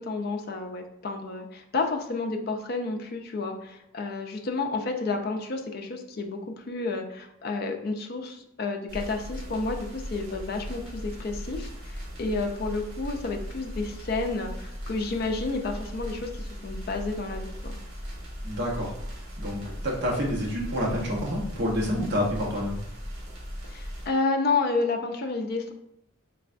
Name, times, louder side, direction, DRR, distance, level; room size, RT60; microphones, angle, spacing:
voice 1, 0.0-17.8 23.7-25.7, left 3 dB, 45° left, 4 dB, 0.4 m, -30 dB
sound 1, 8.9-24.1, equal, 80° right, 1.5 m, -38 dB
voice 2, 18.4-22.8, equal, 50° right, -3 dB, 1.1 m, -29 dB
3.9 x 3.3 x 2.5 m, 0.78 s
head